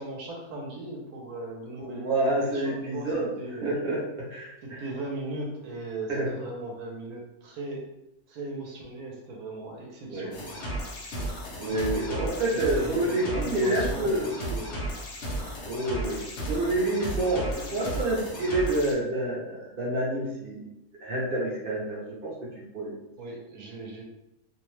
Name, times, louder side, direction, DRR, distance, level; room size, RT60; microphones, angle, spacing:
voice 1, 0.0-3.7 4.6-7.9 8.3-10.9 11.7-12.3 12.5-13.0 13.2-15.0 23.2-24.0, right 2 dB, 70° right, -1 dB, 1.1 m, -38 dB
voice 2, 1.8-3.3 3.6-4.0 4.3-4.8 6.1-6.3 10.1-10.3 11.6-14.3 15.6-20.7 21.0-22.3 22.7-22.9, right 1 dB, 50° right, -6 dB, 0.7 m, -28 dB
sound 1, 10.3-18.9, right 1 dB, 60° left, 0.7 m, -34 dB
2.7 x 2.1 x 3.1 m, 0.89 s
omnidirectional pair, 1.7 m